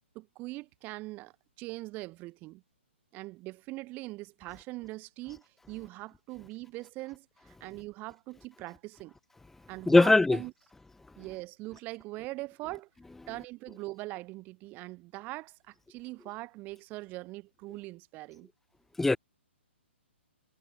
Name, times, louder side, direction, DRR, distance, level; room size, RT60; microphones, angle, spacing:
voice 1, 0.1-2.6 3.1-9.1 9.7-10.5 11.2-12.9 13.3-18.5, right 21 dB, 25° right, 5.6 m, -42 dB
voice 2, 9.9-10.4 19.0-19.2, left 2 dB, 5° left, 0.7 m, -20 dB
hypercardioid pair, 135°, 7 cm